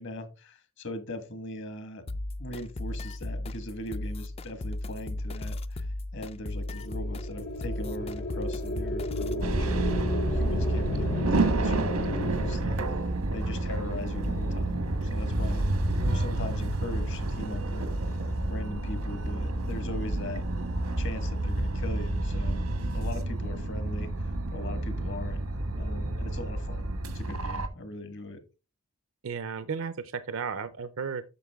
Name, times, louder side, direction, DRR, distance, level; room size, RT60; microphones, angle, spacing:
voice 1, 0.0-2.0 2.4-10.0 10.3-15.7 16.0-20.4 21.0-22.6 22.9-26.9 27.1-28.4, left 1 dB, 55° left, 9 dB, 1.4 m, -40 dB
sound 1, 2.1-9.5, left 1 dB, 25° left, 0.3 m, -36 dB
sound 2, 6.4-12.6, left 1 dB, 90° left, 1.7 m, -35 dB
sound 3, 9.4-27.7, right 1 dB, 90° right, 1.2 m, -29 dB
voice 2, 29.2-31.2, right 5 dB, 65° right, 13 dB, 0.5 m, -34 dB
8.5 x 6.5 x 3.4 m, 0.31 s
head